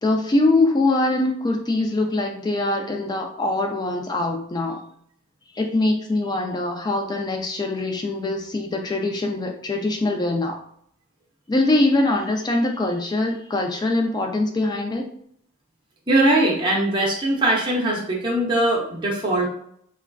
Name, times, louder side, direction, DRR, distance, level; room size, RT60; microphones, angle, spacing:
voice 1, 0.0-4.8 5.5-10.6 11.5-15.1, left 2 dB, 20° left, 2 dB, 0.3 m, -23 dB
voice 2, 16.1-19.5, right 1 dB, 20° right, -4 dB, 0.6 m, -21 dB
3.2 x 2.4 x 2.2 m, 0.68 s
head